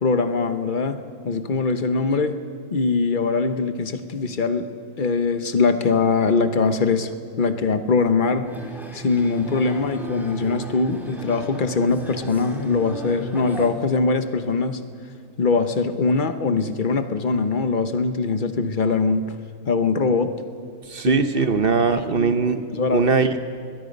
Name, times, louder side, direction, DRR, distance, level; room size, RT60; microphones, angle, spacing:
voice 1, 0.0-1.0 1.2-2.4 2.7-4.7 5.0-7.1 7.4-8.5 8.9-14.8 15.4-19.4 19.7-20.4 21.1-21.2 21.4-21.5 21.9-22.3 22.7-23.1, left 4 dB, 35° left, 9 dB, 1.0 m, -22 dB
sound 1, 8.5-13.7, right 2 dB, ahead, 2.7 m, -35 dB
voice 2, 20.9-22.6 22.9-23.4, right 4 dB, 45° right, 9 dB, 0.9 m, -20 dB
24.0 x 21.0 x 5.3 m, 2.2 s
omnidirectional pair, 1.7 m